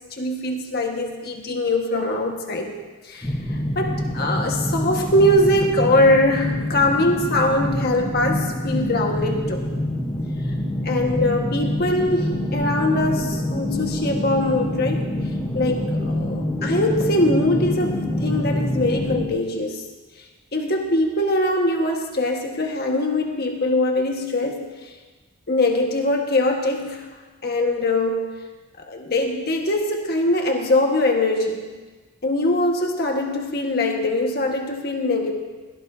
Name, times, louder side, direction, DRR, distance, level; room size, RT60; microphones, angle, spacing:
voice 1, 0.2-2.7 3.0-9.7 10.8-15.1 15.5-19.8 20.5-24.9 25.5-27.0 27.4-28.3 28.8-31.7 32.2-35.3, left 1 dB, 45° left, 2 dB, 1.5 m, -22 dB
sound 1, 3.2-19.3, left 1 dB, 15° left, 1.1 m, -26 dB
16.5 x 16.5 x 2.7 m, 1.3 s
head